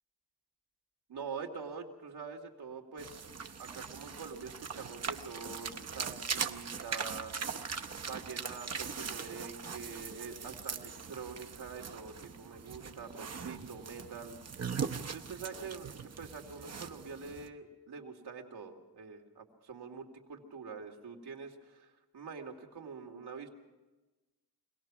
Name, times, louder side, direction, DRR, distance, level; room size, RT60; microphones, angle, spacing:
voice 1, 1.1-3.3 3.6-7.5 8.0-14.4 15.1-23.5, right 5 dB, 85° right, 2 dB, 2.5 m, -45 dB
sound 1, 3.0-17.5, right 6 dB, 40° right, 0.8 m, -41 dB
25.0 x 18.0 x 6.1 m, 1.1 s
wide cardioid pair, 160°, 38 cm